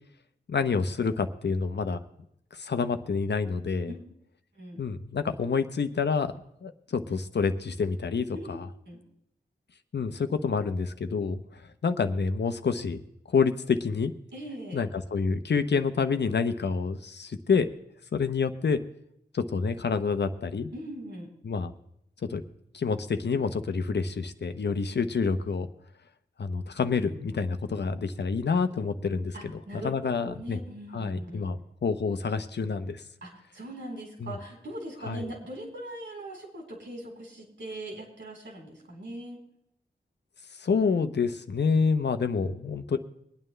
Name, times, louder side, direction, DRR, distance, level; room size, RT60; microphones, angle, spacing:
voice 1, 0.5-2.0 2.5-3.9 4.8-6.3 6.6-8.7 9.9-13.0 13.3-14.1 14.7-17.7 18.1-18.8 19.3-20.7 21.4-21.7 22.2-22.4 22.7-25.7 26.4-29.3 29.7-30.6 30.9-33.0 34.2-34.3 35.1-35.2 40.6-43.0, left 5 dB, 70° left, 9 dB, 0.8 m, -28 dB
voice 2, 14.3-14.8 20.7-21.3 29.3-31.5 33.2-39.4, right 1 dB, 85° right, -1 dB, 4.1 m, -40 dB
23.0 x 9.2 x 3.3 m, 0.73 s
wide cardioid pair, 70°, 18 cm